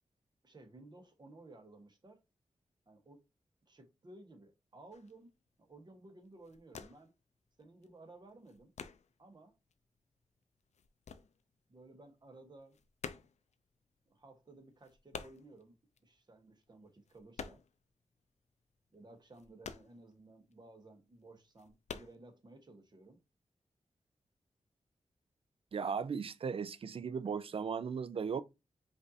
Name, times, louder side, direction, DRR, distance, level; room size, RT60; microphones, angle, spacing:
voice 1, 0.4-2.2 2.9-3.2 3.7-5.3 5.6-7.1 7.6-8.7 9.2-9.5 11.7-12.8 14.1-15.7 16.0-17.6 18.9-23.2, right 2 dB, 40° right, 1.1 m, -57 dB
sound 1, 4.9-5.2 5.7-6.0 6.2-7.2 7.5-9.4 9.7-11.9 12.2-17.9 18.2-18.3 18.7-20.6 21.0-21.1 21.5-22.2, left 6 dB, 80° left, 0.4 m, -49 dB
voice 2, 25.7-28.4, right 6 dB, 55° right, 0.4 m, -37 dB
5.1 x 2.6 x 2.6 m
wide cardioid pair, 85°, 12 cm